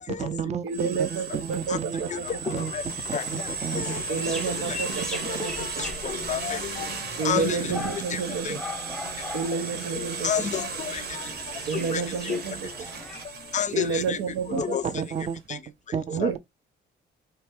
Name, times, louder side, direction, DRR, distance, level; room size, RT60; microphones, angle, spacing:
voice 1, 0.1-2.1 2.4-4.5 5.2-5.5 14.5-16.3, right 7 dB, 35° right, 0.5 m, -33 dB
voice 2, 0.6-2.2 4.1-5.7 7.2-8.6 9.3-10.5 11.7-12.7 13.7-14.8 16.1-16.4, right 6 dB, 90° right, 0.6 m, -30 dB
sound 1, 0.7-15.4, right 5 dB, 55° right, 0.9 m, -36 dB
sound 2, 1.5-13.3, left 3 dB, ahead, 0.8 m, -41 dB
sound 3, 2.3-7.8, left 10 dB, 90° left, 0.5 m, -43 dB
voice 3, 5.3-6.9 7.2-7.7 8.1-8.2 8.4-8.5 10.0-11.2 11.7-12.0 12.3-12.4 13.5-14.2 14.5-14.8, left 8 dB, 40° left, 0.5 m, -29 dB
3.2 x 2.5 x 3.4 m
cardioid pair, 90°, 20 cm